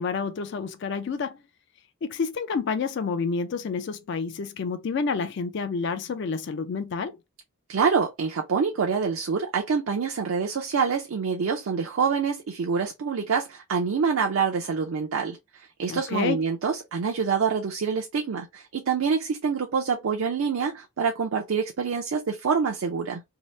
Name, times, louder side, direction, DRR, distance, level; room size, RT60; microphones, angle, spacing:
voice 1, 0.0-1.4 2.0-7.2 15.9-16.4, left 5 dB, 55° left, 0.3 m, -29 dB
voice 2, 7.7-23.2, right 5 dB, 70° right, 0.4 m, -26 dB
2.8 x 2.0 x 3.0 m
head